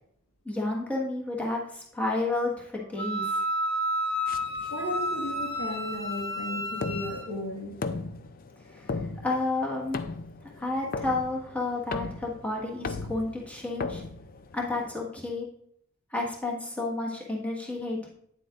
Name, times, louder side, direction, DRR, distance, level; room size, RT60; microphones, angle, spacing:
voice 1, 0.4-3.4 8.7-10.0 10.6-14.0 14.5-15.5 16.1-18.1, left 2 dB, 5° left, -3 dB, 1.5 m, -31 dB
Wind instrument woodwind instrument, 3.0-7.3, equal, 30° left, 1.6 m, -31 dB
sound 1, 4.3-14.9, left 3 dB, 45° left, 0.5 m, -38 dB
voice 2, 4.7-7.8, left 1 dB, 75° left, 1 dB, 1.7 m, -35 dB
9.2 x 7.5 x 2.5 m, 0.68 s
head